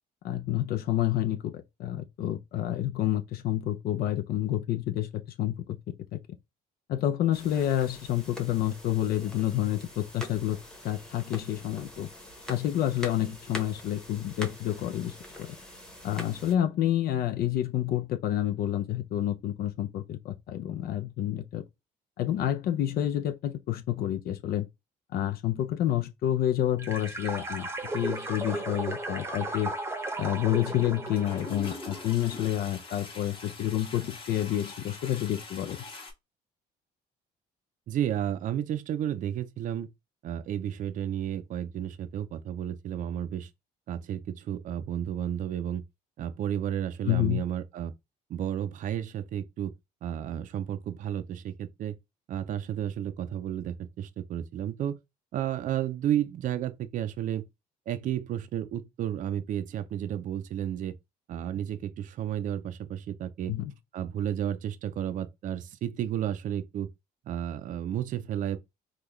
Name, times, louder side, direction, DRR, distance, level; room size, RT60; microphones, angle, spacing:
voice 1, 0.2-6.2 6.9-10.6 10.8-12.1 12.5-15.6 16.0-21.7 22.2-24.7 25.1-27.7 27.9-29.7 30.2-35.8 47.0-47.4 63.5-63.7, left 12 dB, 65° left, 0.5 m, -29 dB
sound 1, 7.3-16.5, left 1 dB, 5° left, 1.0 m, -44 dB
sound 2, 26.8-32.5, right 2 dB, 15° right, 0.8 m, -35 dB
Toilet flush, 30.7-30.8 31.1-36.1, left 3 dB, 30° left, 1.2 m, -43 dB
voice 2, 37.9-39.9 40.2-43.5 43.9-45.8 46.2-47.9 48.3-49.7 50.0-52.0 52.3-55.0 55.3-57.4 57.9-61.0 61.3-63.5 63.9-66.9 67.3-68.6, right 10 dB, 50° right, 0.4 m, -32 dB
3.8 x 2.3 x 3.0 m
cardioid pair, 110°, 17 cm